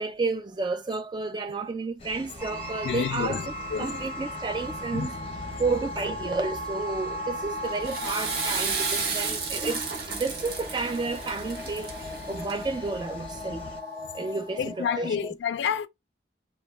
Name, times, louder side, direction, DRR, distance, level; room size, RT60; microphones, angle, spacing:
voice 1, 0.0-5.1 5.6-9.8 10.1-11.9 12.3-13.6 14.1-15.1, right 3 dB, 25° right, 0.3 m, -31 dB
sound 1, 2.0-13.8, left 2 dB, 30° left, 0.7 m, -43 dB
sound 2, 2.4-15.3, left 1 dB, ahead, 0.9 m, -38 dB
voice 2, 2.8-4.0 4.9-5.1 14.6-15.9, left 7 dB, 80° left, 0.3 m, -29 dB
Water / Toilet flush, 7.6-12.9, right 5 dB, 60° right, 0.7 m, -32 dB
2.1 x 2.1 x 3.1 m
head